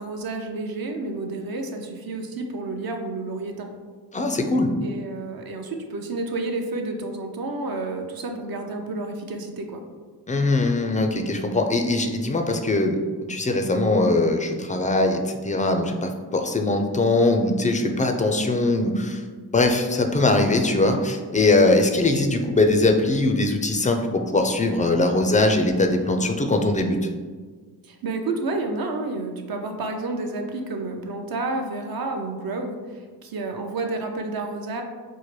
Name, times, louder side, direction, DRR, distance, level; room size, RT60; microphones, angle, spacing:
voice 1, 0.0-3.7 4.8-9.8 27.8-34.8, right 2 dB, 55° right, 4 dB, 0.6 m, -30 dB
voice 2, 4.1-4.7 10.3-13.0 13.3-19.2 19.5-27.0, left 2 dB, 20° left, 4 dB, 0.3 m, -21 dB
4.5 x 2.1 x 3.1 m, 1.5 s
cardioid pair, 60°, 44 cm